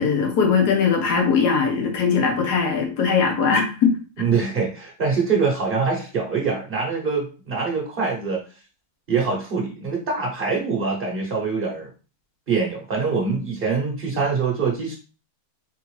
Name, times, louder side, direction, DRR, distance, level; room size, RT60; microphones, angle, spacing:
voice 1, 0.0-3.9, left 5 dB, 85° left, 2 dB, 1.6 m, -20 dB
voice 2, 4.2-8.4 9.1-11.9 12.5-14.9, right 5 dB, 45° right, -2 dB, 0.8 m, -24 dB
3.8 x 3.5 x 3.1 m, 0.36 s
omnidirectional pair, 1.7 m